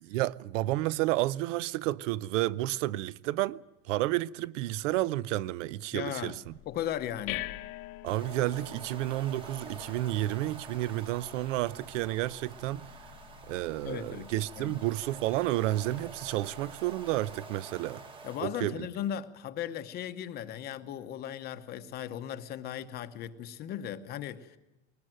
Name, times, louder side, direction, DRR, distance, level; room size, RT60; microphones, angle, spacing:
voice 1, 0.0-3.6 3.9-6.4 8.0-12.9 13.5-18.0 18.4-18.9, right 16 dB, 70° right, 0.7 m, -31 dB
voice 2, 5.9-6.4 6.7-7.5 13.8-14.8 18.2-24.6, left 10 dB, 25° left, 0.8 m, -37 dB
sound 1, 6.4-17.4, left 17 dB, 50° left, 1.0 m, -47 dB
sound 2, 8.1-18.5, right 3 dB, 15° right, 1.0 m, -48 dB
20.5 x 19.5 x 9.0 m
supercardioid pair, 180°, 38 cm